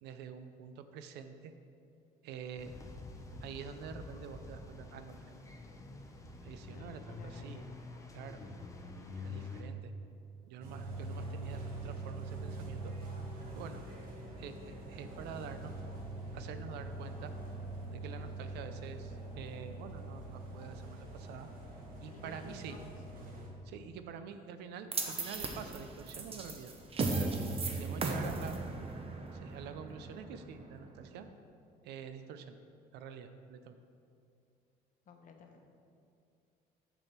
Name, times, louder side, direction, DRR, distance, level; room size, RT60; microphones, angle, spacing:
voice 1, 0.0-1.5 2.2-2.7 3.4-5.2 6.4-7.7 8.1-8.4 9.2-9.9 10.5-12.9 13.6-13.9 14.4-15.7 16.3-17.3 17.9-21.5 22.0-22.8 23.7-26.7 27.1-27.3 27.7-28.6 29.3-31.3 31.8-32.6 32.9-33.7, right 7 dB, 80° right, 9 dB, 0.5 m, -47 dB
sound 1, 2.6-9.6, left 3 dB, 20° left, 0.7 m, -47 dB
voice 2, 6.7-7.7 8.7-8.8 22.0-23.0 23.8-23.9 27.7-28.7 35.1-35.7, left 5 dB, 50° left, 3 dB, 0.9 m, -55 dB
sound 2, 10.6-23.5, right 2 dB, 60° right, 1.4 m, -44 dB
sound 3, 24.9-31.2, right 3 dB, 35° right, 0.8 m, -37 dB
6.5 x 6.2 x 4.3 m, 2.5 s
cardioid pair, 110°, 17 cm